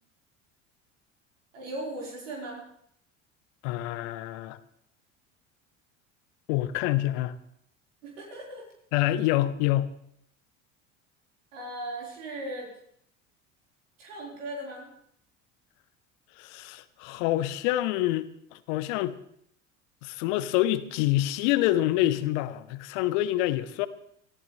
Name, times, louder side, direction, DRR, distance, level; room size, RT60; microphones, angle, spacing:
voice 1, 1.5-2.6 8.0-8.6 11.5-12.7 14.0-14.9, right 1 dB, 75° right, -4 dB, 4.6 m, -37 dB
voice 2, 3.6-4.6 6.5-7.3 8.9-9.9 16.4-19.1 20.0-23.9, left 15 dB, 65° left, 14 dB, 1.1 m, -27 dB
24.0 x 14.0 x 3.3 m, 0.69 s
hypercardioid pair, 70°, 38 cm